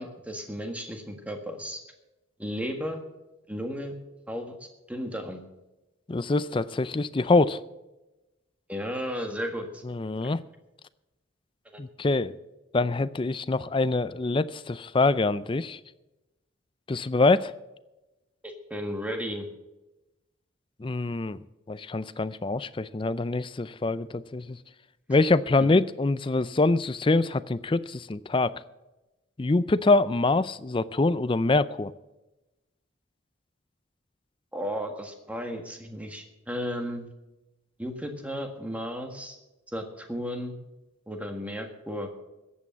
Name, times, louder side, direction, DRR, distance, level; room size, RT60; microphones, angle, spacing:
voice 1, 0.0-1.8 2.4-3.0 3.5-3.9 4.3-4.6 4.9-5.4 8.7-9.8 10.2-10.3 11.7-11.8 18.4-19.5 25.6-25.7 34.5-37.1 37.8-39.4 39.7-40.6 41.1-42.1, equal, 5° right, 4 dB, 1.6 m, -34 dB
voice 2, 6.1-7.6 9.9-10.4 11.8-12.4 12.7-15.8 16.9-17.5 20.8-21.4 21.7-24.6 25.1-28.5 29.4-31.9, left 3 dB, 25° left, 15 dB, 0.4 m, -25 dB
14.5 x 8.5 x 7.4 m, 1.0 s
head